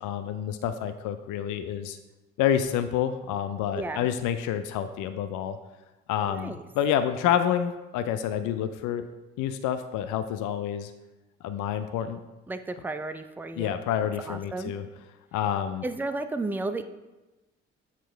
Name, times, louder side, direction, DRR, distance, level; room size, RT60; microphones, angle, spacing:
voice 1, 0.0-2.0 2.4-5.6 6.1-9.1 9.4-10.9 11.4-12.2 13.6-14.9 15.3-15.8, left 9 dB, 55° left, 9 dB, 0.5 m, -28 dB
voice 2, 3.7-4.1 6.3-6.6 12.5-13.8 14.3-14.7 15.8-16.8, right 2 dB, 5° right, 10 dB, 0.4 m, -33 dB
8.0 x 3.0 x 4.6 m, 1.1 s
hypercardioid pair, 45°, 37 cm